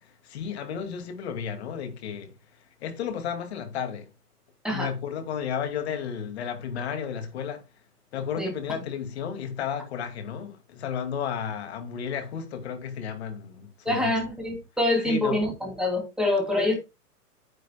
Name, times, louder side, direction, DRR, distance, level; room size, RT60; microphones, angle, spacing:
voice 1, 0.0-2.3 2.8-4.1 4.7-7.6 8.1-14.2 15.0-15.4 16.6-16.7, left 7 dB, 40° left, 2.4 m, -33 dB
voice 2, 13.8-16.8, left 1 dB, ahead, 2.9 m, -25 dB
9.8 x 9.2 x 2.3 m
figure-of-eight pair, 130°, 47 cm